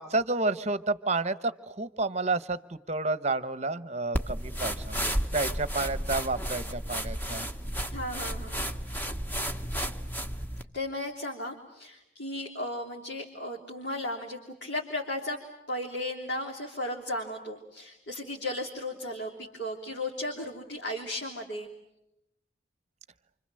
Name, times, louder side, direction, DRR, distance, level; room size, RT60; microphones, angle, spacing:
voice 1, 0.0-2.6 2.9-7.5, right 3 dB, 35° right, 14 dB, 1.0 m, -30 dB
sound 1, 4.1-10.6, equal, 10° left, 1.3 m, -32 dB
voice 2, 7.9-8.7 10.7-15.4 15.7-21.7, left 1 dB, 60° left, -1 dB, 3.3 m, -35 dB
29.0 x 26.5 x 7.7 m, 0.86 s
head